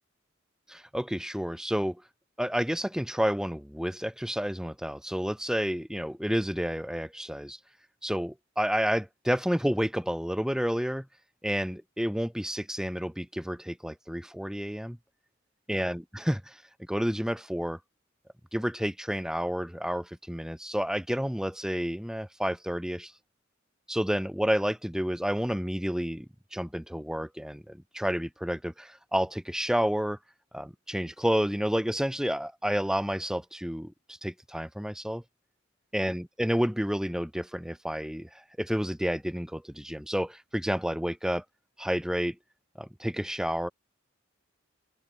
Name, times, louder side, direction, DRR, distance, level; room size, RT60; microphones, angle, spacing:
voice 1, 0.7-2.0 2.4-7.6 8.0-11.1 11.4-15.0 15.7-16.6 16.9-17.8 18.5-23.1 23.9-30.2 30.5-33.9 34.2-35.2 35.9-38.3 38.6-41.4 41.8-42.4 42.8-43.7, equal, 5° right, 2.1 m, -30 dB
head